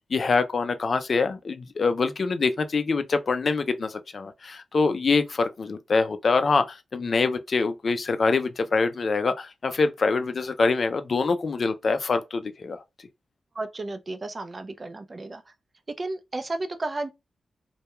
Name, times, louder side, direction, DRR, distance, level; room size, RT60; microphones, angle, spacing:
voice 1, 0.1-12.8, left 4 dB, 60° left, 0.4 m, -25 dB
voice 2, 13.5-15.5 16.0-17.1, right 2 dB, 40° right, 0.4 m, -33 dB
2.2 x 2.1 x 2.9 m
cardioid pair, 50°, 0 cm